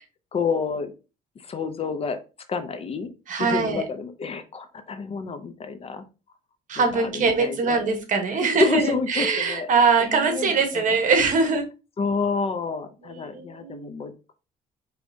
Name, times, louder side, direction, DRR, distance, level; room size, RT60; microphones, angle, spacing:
voice 1, 0.3-0.9 1.4-2.2 2.5-3.1 3.4-6.0 6.8-7.8 8.3-9.7 10.0-10.8 12.0-14.1, left 5 dB, 35° left, 10 dB, 0.5 m, -29 dB
voice 2, 3.3-3.8 6.7-11.6 13.0-13.9, right 4 dB, 50° right, 6 dB, 1.0 m, -22 dB
4.7 x 3.2 x 2.6 m, 0.31 s
cardioid pair, 110°, 17 cm